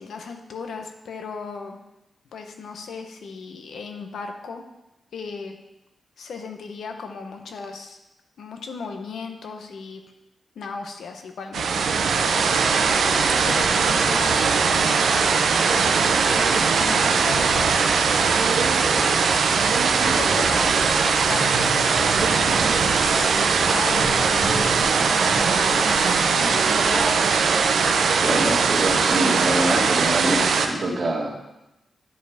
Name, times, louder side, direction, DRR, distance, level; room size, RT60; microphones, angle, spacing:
voice 1, 0.0-1.8 2.3-4.6 5.1-5.6 6.2-8.0 8.4-10.0 10.6-11.7 11.9-12.9 13.5-17.8 18.9-19.2 20.0-21.7 22.2-27.1, left 5 dB, 80° left, 5 dB, 0.8 m, -36 dB
sound 1, 11.5-30.7, right 5 dB, 90° right, 0.6 m, -20 dB
sound 2, 20.3-28.0, right 1 dB, 10° right, 0.8 m, -39 dB
sound 3, 20.8-27.6, equal, 40° left, 2.5 m, -36 dB
voice 2, 28.2-31.4, right 1 dB, 40° right, -5 dB, 1.8 m, -25 dB
10.5 x 5.0 x 3.5 m, 0.94 s
wide cardioid pair, 140°, 0 cm